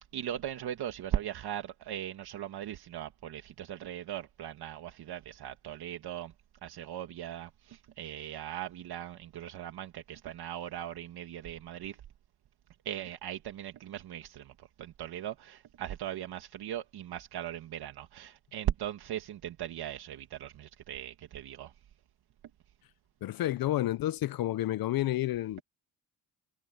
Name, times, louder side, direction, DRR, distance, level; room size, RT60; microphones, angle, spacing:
voice 1, 0.1-6.3 6.6-12.0 12.9-14.5 14.8-21.7, right 11 dB, 80° right, 1.7 m, -39 dB
voice 2, 23.2-25.6, left 14 dB, 65° left, 0.6 m, -30 dB
cardioid pair, 105°, 38 cm